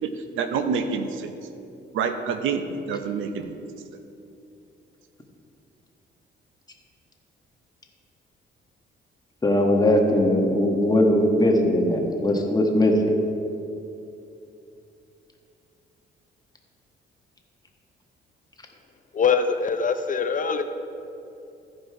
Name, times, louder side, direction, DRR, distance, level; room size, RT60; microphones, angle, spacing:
voice 1, 0.0-1.3 1.9-3.5, right 5 dB, 85° right, 8 dB, 0.7 m, -27 dB
voice 2, 9.4-13.2, left 1 dB, 20° left, 1 dB, 1.4 m, -20 dB
voice 3, 19.1-20.6, left 5 dB, 40° left, 8 dB, 0.6 m, -23 dB
14.5 x 5.3 x 4.7 m, 2.8 s
cardioid pair, 90°, 20 cm